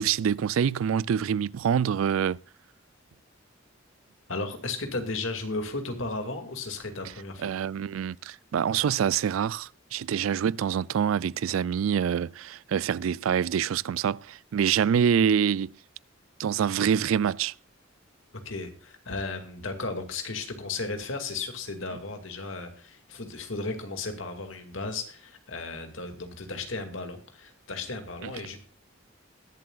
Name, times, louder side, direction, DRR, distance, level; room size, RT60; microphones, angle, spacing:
voice 1, 0.0-2.4 7.4-15.7 16.4-17.5 28.2-28.3, right 8 dB, 90° right, 0.4 m, -26 dB
voice 2, 4.3-7.5 18.4-28.6, left 3 dB, 75° left, 2.2 m, -35 dB
21.0 x 7.6 x 2.4 m
head